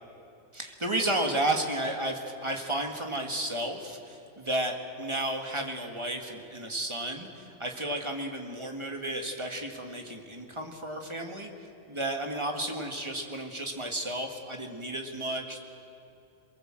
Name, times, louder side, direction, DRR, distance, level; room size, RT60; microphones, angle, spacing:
voice 1, 0.5-11.5 11.9-15.6, right 1 dB, 20° right, 2 dB, 1.9 m, -32 dB
23.0 x 22.0 x 7.7 m, 2.7 s
omnidirectional pair, 1.4 m